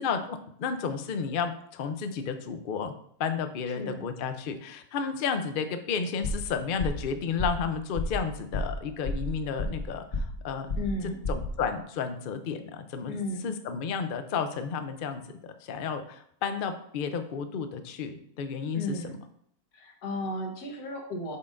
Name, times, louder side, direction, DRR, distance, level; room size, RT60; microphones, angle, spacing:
voice 1, 0.0-2.9 3.2-10.8 11.3-13.2 13.4-19.1, left 6 dB, 60° left, 8 dB, 0.5 m, -32 dB
voice 2, 3.7-4.0 10.8-11.2 13.1-13.5 18.7-19.2 19.7-21.4, left 1 dB, 90° left, 2 dB, 1.7 m, -34 dB
sound 1, 6.2-6.5 6.8-7.1 7.4-7.7 8.0-8.2 8.5-8.8 9.1-9.9 10.1-10.4 10.7-11.0 11.2-11.5, left 2 dB, 40° left, 1.2 m, -31 dB
7.8 x 5.8 x 2.5 m, 0.66 s
omnidirectional pair, 1.6 m